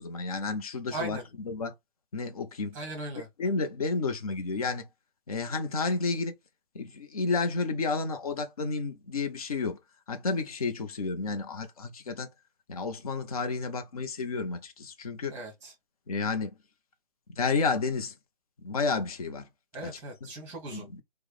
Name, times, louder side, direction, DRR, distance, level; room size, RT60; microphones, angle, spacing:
voice 1, 0.0-1.7 2.1-2.8 3.2-4.9 5.3-6.3 6.7-9.8 10.1-12.3 12.7-15.4 16.1-16.6 17.3-18.2 18.6-19.5 19.8-20.3 20.7-21.0, left 4 dB, 35° left, 0.6 m, -31 dB
voice 2, 0.9-1.2 2.7-3.3 15.3-15.7 19.7-20.9, right 2 dB, 5° right, 0.9 m, -38 dB
4.6 x 2.1 x 3.1 m
figure-of-eight pair, 150°, 31 cm